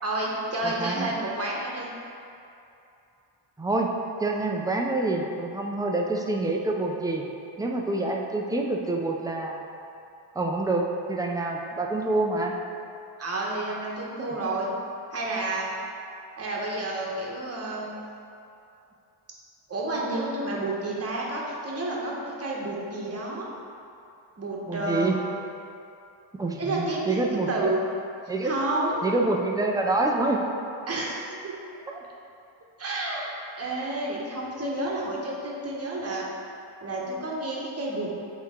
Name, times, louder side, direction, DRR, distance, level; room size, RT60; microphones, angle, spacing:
voice 1, 0.0-1.9 13.2-14.7 15.1-15.7 16.4-18.0 19.7-23.5 24.4-25.2 26.6-27.2 27.5-27.8 28.4-29.2 30.9-31.6 32.8-36.3 36.8-38.1, right 2 dB, 30° right, -4 dB, 1.1 m, -30 dB
voice 2, 0.6-1.1 3.6-3.9 4.2-7.2 7.6-9.6 10.4-10.8 11.1-12.5 24.7-25.2 26.4-27.7 28.3-28.5 29.0-30.4 31.9-32.0, right 2 dB, 10° right, 0 dB, 0.4 m, -27 dB
8.1 x 3.1 x 3.7 m, 2.7 s
cardioid pair, 120°, 50 cm